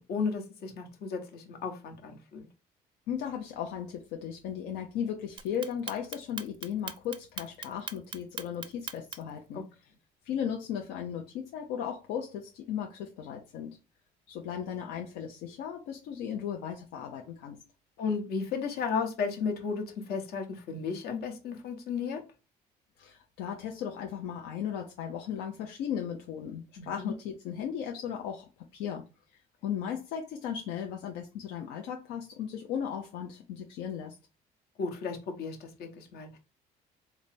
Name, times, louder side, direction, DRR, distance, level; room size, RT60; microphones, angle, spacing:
voice 1, 0.0-2.5 9.5-9.6 18.0-22.2 26.8-27.1 34.8-36.4, left 5 dB, 70° left, 1.0 m, -34 dB
voice 2, 3.1-9.6 10.2-13.8 14.3-17.6 23.0-29.0 29.6-34.2, left 8 dB, 90° left, 0.6 m, -36 dB
Clock, 5.4-9.4, right 6 dB, 30° right, 0.4 m, -39 dB
3.3 x 2.0 x 4.1 m
cardioid pair, 110°, 17 cm